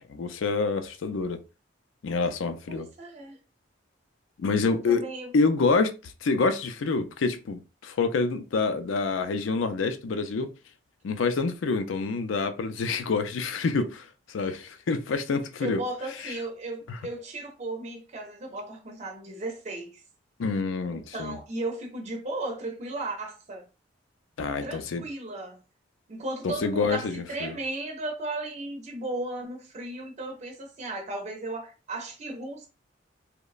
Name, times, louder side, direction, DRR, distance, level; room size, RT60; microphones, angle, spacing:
voice 1, 0.1-1.4 2.0-2.9 4.4-5.0 5.3-10.5 11.0-15.8 16.2-16.3 16.9-17.0 20.4-21.4 24.4-25.0 26.4-27.5, left 4 dB, 75° left, 0.4 m, -27 dB
voice 2, 2.7-3.4 4.7-5.3 15.6-20.0 20.9-23.6 24.6-25.6 26.1-32.7, right 2 dB, 35° right, 0.5 m, -35 dB
2.9 x 2.1 x 2.3 m
head